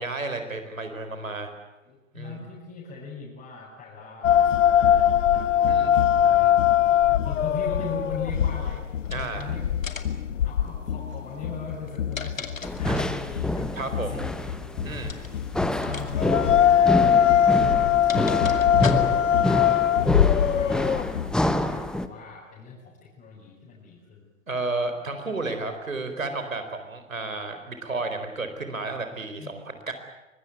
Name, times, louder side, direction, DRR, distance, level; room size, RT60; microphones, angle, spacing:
voice 1, 0.0-1.5 2.1-2.4 5.7-6.0 9.1-9.5 12.9-13.0 13.7-14.2 14.8-15.2 24.5-29.9, right 3 dB, 85° right, 7 dB, 4.5 m, -32 dB
voice 2, 1.8-8.8 9.1-9.7 10.4-15.1 15.8-24.3 29.3-29.6, left 4 dB, 25° left, -5 dB, 6.1 m, -41 dB
sound 1, 4.2-21.3, left 9 dB, 70° left, 1.1 m, -22 dB
sound 2, 9.0-9.4 9.8-10.2 11.7-13.2 15.0-15.3 15.8-16.1 16.3-16.5 17.4-19.4, left 5 dB, 85° left, 2.4 m, -36 dB
sound 3, 12.6-22.1, left 1 dB, ahead, 0.9 m, -27 dB
24.0 x 20.5 x 9.4 m, 1.0 s
figure-of-eight pair, 115°, 39 cm